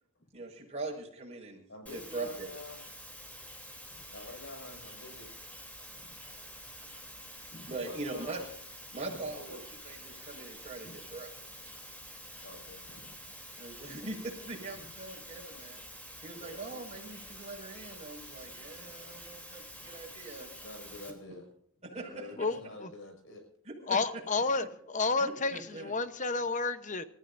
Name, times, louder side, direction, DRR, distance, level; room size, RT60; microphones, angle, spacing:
voice 1, 0.3-2.5 7.7-8.5 8.9-9.6 9.8-11.3 13.6-15.8 16.2-20.5 21.8-22.4 23.6-24.2 25.2-25.9, right 2 dB, 30° right, 5.7 m, -42 dB
voice 2, 1.7-2.8 4.1-5.3 7.8-8.4 9.3-9.6 12.4-13.1 16.3-17.2 18.7-19.2 20.6-21.5 21.8-23.5, left 2 dB, 60° left, 6.1 m, -48 dB
sound 1, 1.9-21.1, equal, 5° left, 3.3 m, -48 dB
voice 3, 22.4-22.9 23.9-27.1, left 3 dB, 35° left, 1.0 m, -31 dB
29.0 x 14.5 x 2.7 m
head